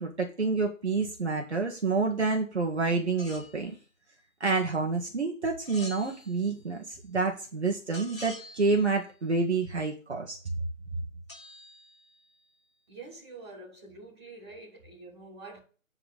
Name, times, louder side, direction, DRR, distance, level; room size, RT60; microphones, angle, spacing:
voice 1, 0.0-3.7 4.4-10.4, right 4 dB, 55° right, 1.9 m, -28 dB
sound 1, 3.2-3.6 5.6-6.6 7.9-9.0 11.3-12.4, left 1 dB, 20° left, 3.5 m, -46 dB
voice 2, 12.9-15.6, right 3 dB, 20° right, 3.1 m, -46 dB
8.8 x 4.8 x 5.3 m
figure-of-eight pair, 170°, 40 cm